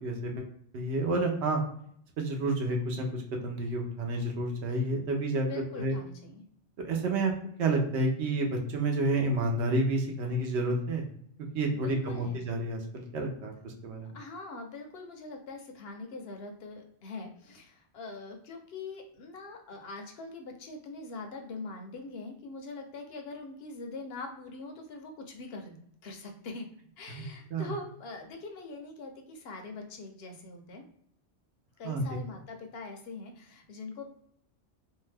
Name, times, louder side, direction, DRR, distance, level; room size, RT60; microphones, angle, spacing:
voice 1, 0.0-0.5 0.7-1.6 2.2-5.5 5.8-6.0 6.8-7.3 7.6-11.0 11.5-14.1 27.5-27.7 31.8-32.0, right 2 dB, 70° right, 2 dB, 0.9 m, -30 dB
voice 2, 5.5-6.4 11.7-12.4 14.1-25.8 26.0-26.7 27.0-30.8 31.8-34.1, left 3 dB, 65° left, 4 dB, 0.7 m, -43 dB
2.7 x 2.1 x 3.2 m, 0.67 s
omnidirectional pair, 1.3 m